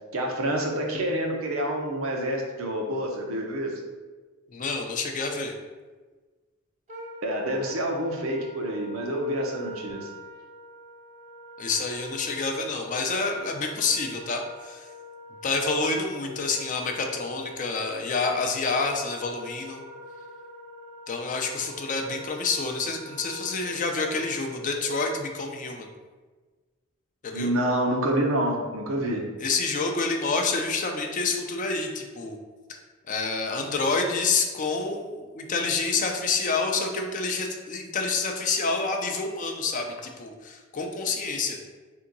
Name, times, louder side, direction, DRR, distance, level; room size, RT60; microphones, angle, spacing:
voice 1, 0.1-3.8 7.2-10.1 27.3-29.3, right 1 dB, 75° right, 1 dB, 0.7 m, -27 dB
voice 2, 4.5-5.5 11.6-14.9 15.4-19.8 21.1-25.9 27.2-27.5 29.4-32.4 33.1-41.6, left 4 dB, 40° left, 3 dB, 0.4 m, -28 dB
Wind instrument woodwind instrument, 6.9-25.0, left 2 dB, 35° right, 0.5 m, -45 dB
3.5 x 2.8 x 3.8 m, 1.3 s
head